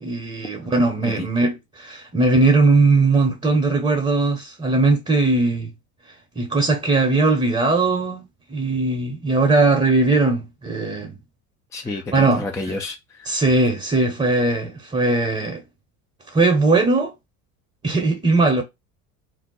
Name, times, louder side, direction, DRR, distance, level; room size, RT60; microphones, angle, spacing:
voice 1, 0.0-5.7 6.4-8.2 8.5-11.2 12.1-12.5 13.3-15.6 16.3-17.1 17.8-18.6, right 3 dB, 15° right, 0.8 m, -19 dB
voice 2, 11.7-13.4, left 2 dB, 10° left, 0.3 m, -30 dB
2.7 x 2.1 x 3.9 m
supercardioid pair, 85°, 42 cm